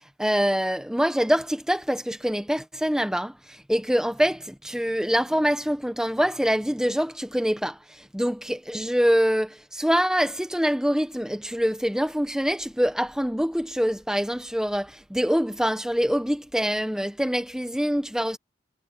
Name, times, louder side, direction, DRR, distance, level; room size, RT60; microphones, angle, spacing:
voice 1, 0.2-18.4, equal, 5° right, 1.2 m, -25 dB
head